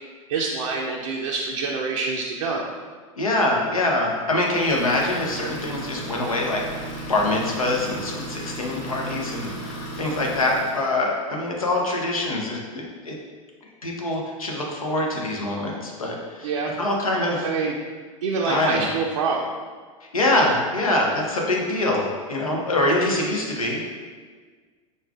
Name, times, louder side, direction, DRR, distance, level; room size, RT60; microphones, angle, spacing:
voice 1, 0.3-2.7 16.4-16.7 17.4-17.8 18.2-19.5, right 4 dB, 65° right, -1 dB, 0.5 m, -26 dB
voice 2, 3.2-6.6 7.1-13.1 13.8-16.5 16.8-17.5 18.4-18.9 20.1-24.0, left 2 dB, 80° left, -1 dB, 0.8 m, -24 dB
Idling, 4.4-10.9, right 1 dB, 55° left, 1.0 m, -35 dB
5.4 x 3.8 x 2.4 m, 1.5 s
figure-of-eight pair, 85°, 18 cm